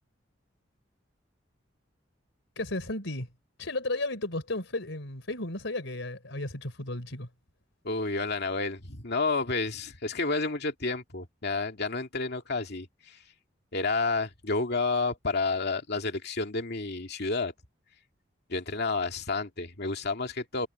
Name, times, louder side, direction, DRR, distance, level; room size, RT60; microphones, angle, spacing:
voice 1, 2.6-3.3 3.6-7.3, left 2 dB, 75° left, 4.3 m, -34 dB
voice 2, 7.8-13.2 13.7-17.5 18.5-20.7, left 3 dB, 60° left, 2.4 m, -30 dB
head